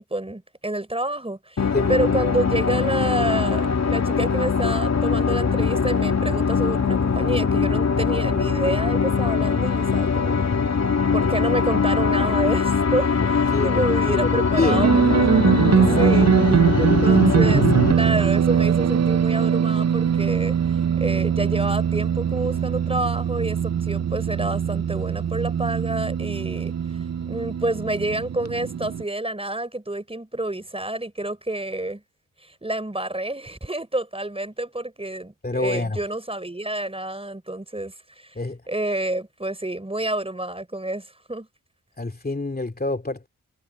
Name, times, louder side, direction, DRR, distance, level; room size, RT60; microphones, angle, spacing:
voice 1, 0.0-10.4 11.1-16.3 16.8-20.6 21.0-26.7 27.3-32.0 32.4-38.3 38.7-41.5, right 1 dB, 15° right, 5.6 m, -29 dB
sound 1, 1.6-17.9, left 5 dB, 50° left, 2.3 m, -22 dB
voice 2, 13.5-14.8 15.8-17.2 35.4-36.0 38.3-38.6 42.0-43.3, left 2 dB, 25° left, 2.8 m, -28 dB
sound 2, 14.7-29.0, right 8 dB, 50° right, 0.8 m, -21 dB
supercardioid pair, 45°, 34 cm